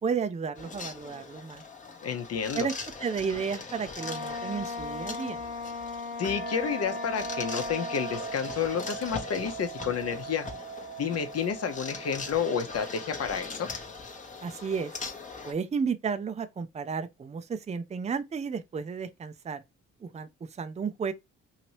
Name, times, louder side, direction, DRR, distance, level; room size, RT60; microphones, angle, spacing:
voice 1, 0.0-1.6 2.5-2.7 3.0-5.4 14.4-14.9 15.4-19.6 20.0-21.1, right 6 dB, 25° right, 0.5 m, -32 dB
sound 1, 0.6-15.5, left 4 dB, 25° left, 0.9 m, -41 dB
voice 2, 2.0-2.7 6.2-10.5 11.0-13.7, left 7 dB, 55° left, 0.9 m, -30 dB
Wind instrument woodwind instrument, 3.9-8.5, left 3 dB, 80° left, 1.0 m, -37 dB
sound 2, 6.2-14.4, right 7 dB, 80° right, 1.0 m, -41 dB
2.9 x 2.8 x 3.0 m
cardioid pair, 90°, 30 cm